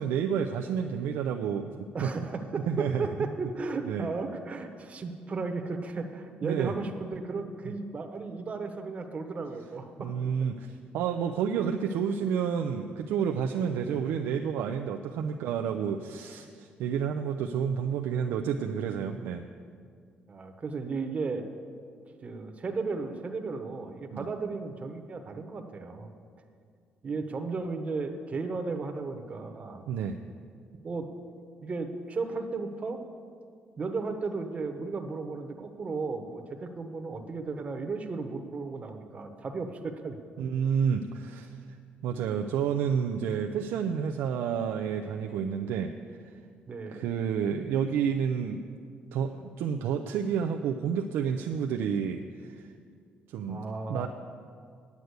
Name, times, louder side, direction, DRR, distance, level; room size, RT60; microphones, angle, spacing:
voice 1, 0.0-2.1 2.7-3.1 3.9-4.1 6.4-6.8 10.0-19.4 24.1-24.3 29.9-30.2 40.4-41.5 42.0-45.9 46.9-48.6 49.1-52.7 53.3-54.1, right 7 dB, 90° right, 3 dB, 0.5 m, -30 dB
voice 2, 1.9-10.5 13.9-14.0 20.3-21.5 22.2-26.1 27.0-29.8 30.8-31.1 31.6-33.0 33.8-40.2 46.7-47.1 53.5-54.1, right 4 dB, 35° right, 5 dB, 1.0 m, -35 dB
9.1 x 8.3 x 8.0 m, 2.2 s
cardioid pair, 110°, 4 cm